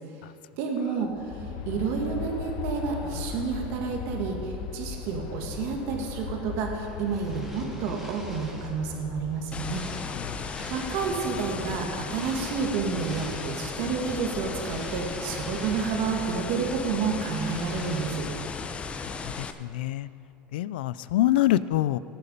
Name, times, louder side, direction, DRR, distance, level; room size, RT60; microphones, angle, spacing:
voice 1, 0.6-9.8 10.7-18.3, right 5 dB, 60° right, 1 dB, 2.1 m, -30 dB
Aircraft, 1.0-17.1, left 7 dB, 65° left, 0.8 m, -40 dB
sound 1, 6.8-8.9 9.3-11.4 12.0-13.8 14.2-16.4 16.7-18.6, equal, ahead, 2.8 m, -47 dB
sound 2, 9.5-19.5, left 5 dB, 25° left, 0.7 m, -36 dB
voice 2, 10.1-10.5 19.2-20.1 20.5-22.0, left 14 dB, 80° left, 17 dB, 0.4 m, -26 dB
18.5 x 6.9 x 5.3 m, 2.7 s
supercardioid pair, 110°, 5 cm